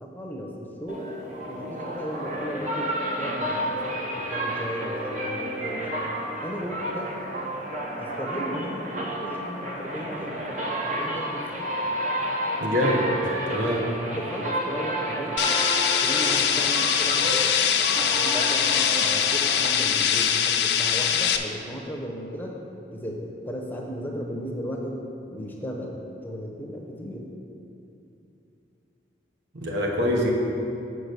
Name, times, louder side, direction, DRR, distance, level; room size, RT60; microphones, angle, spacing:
voice 1, 0.0-1.1 1.5-6.1 6.4-7.1 8.0-11.7 14.1-15.4 16.0-17.5 18.1-22.6 22.9-25.0 25.3-27.3, equal, 10° left, -1 dB, 0.7 m, -36 dB
sound 1, 0.9-20.2, right 1 dB, 40° right, 0.7 m, -31 dB
voice 2, 12.6-13.1 13.5-13.8 29.5-30.3, left 1 dB, 75° right, -1 dB, 1.1 m, -24 dB
sound 2, 15.4-21.4, left 8 dB, 65° left, 0.4 m, -23 dB
6.1 x 4.9 x 6.7 m, 2.8 s
head